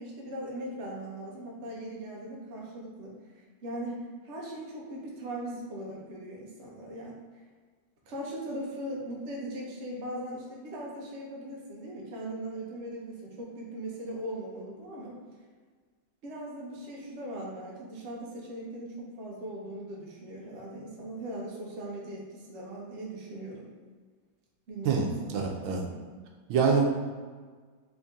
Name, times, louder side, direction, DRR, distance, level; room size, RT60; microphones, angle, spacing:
voice 1, 0.0-3.1 3.6-7.2 8.1-15.2 16.2-23.7 24.7-26.0, right 1 dB, 55° right, -3 dB, 0.8 m, -39 dB
voice 2, 24.8-25.8 26.5-26.9, right 5 dB, 85° right, 1 dB, 1.4 m, -25 dB
3.7 x 2.7 x 3.5 m, 1.5 s
omnidirectional pair, 2.1 m